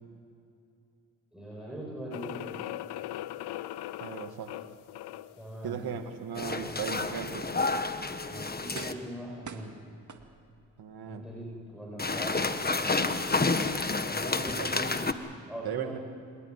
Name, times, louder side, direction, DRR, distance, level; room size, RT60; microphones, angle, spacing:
voice 1, 1.3-2.7 5.3-6.0 8.3-9.8 11.0-13.7 14.1-15.2 15.5-16.0, right 1 dB, ahead, -3 dB, 7.5 m, -41 dB
sound 1, 2.1-5.4, left 14 dB, 85° left, 0.6 m, -39 dB
voice 2, 4.0-4.6 5.6-7.5 10.8-11.3 14.6-14.8 15.6-16.0, right 7 dB, 70° right, 6 dB, 2.2 m, -37 dB
sound 2, 6.4-8.9 12.0-15.1, left 3 dB, 25° left, 1.5 m, -30 dB
sound 3, 8.7-9.2 9.4-10.7 11.2-11.3, right 5 dB, 50° right, 2.3 m, -44 dB
26.5 x 15.5 x 9.8 m, 2.4 s
cardioid pair, 60°, 38 cm